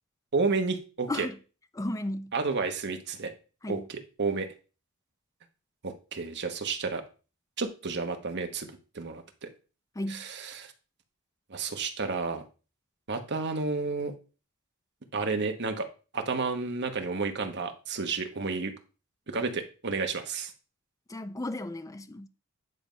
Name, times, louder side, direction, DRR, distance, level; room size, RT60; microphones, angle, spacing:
voice 1, 0.3-1.3 2.3-3.3 3.7-4.5 5.8-7.0 7.6-8.7 8.9-9.5 10.1-10.7 11.5-12.4 13.1-14.1 15.1-15.9 16.1-18.7 19.3-20.5, right 4 dB, 50° right, 1.1 m, -31 dB
voice 2, 1.7-2.3 3.6-3.8 10.0-10.2 21.1-22.3, left 1 dB, 15° left, 0.4 m, -34 dB
9.8 x 3.5 x 5.2 m
head